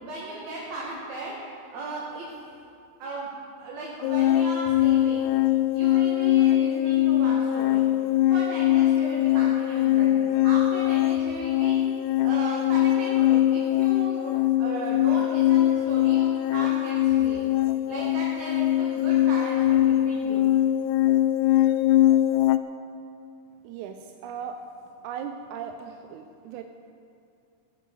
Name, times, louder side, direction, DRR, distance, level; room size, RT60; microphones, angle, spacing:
voice 1, 0.0-2.3 3.0-5.3 5.7-7.8 8.3-11.8 12.2-17.4 17.9-20.4, right 2 dB, 60° right, -5 dB, 3.0 m, -36 dB
sound 1, 4.0-22.6, left 13 dB, 80° left, 2.0 m, -22 dB
voice 2, 23.6-24.6 25.0-26.6, right 7 dB, 80° right, 5 dB, 1.9 m, -37 dB
15.5 x 15.0 x 4.7 m, 2.5 s
omnidirectional pair, 3.7 m